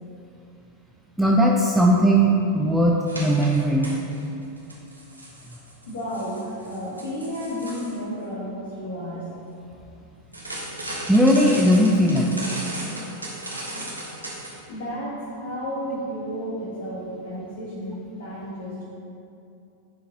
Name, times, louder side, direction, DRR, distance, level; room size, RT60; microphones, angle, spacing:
voice 1, 1.2-3.9 11.1-12.4, equal, ahead, -2 dB, 0.5 m, -18 dB
sound 1, 3.1-4.2 4.6-8.0 10.3-14.6, right 1 dB, 85° right, 1.3 m, -36 dB
voice 2, 5.9-9.3 14.7-18.8, equal, 60° left, -8 dB, 1.7 m, -32 dB
10.0 x 4.7 x 3.7 m, 2.7 s
figure-of-eight pair, 90°, 0 cm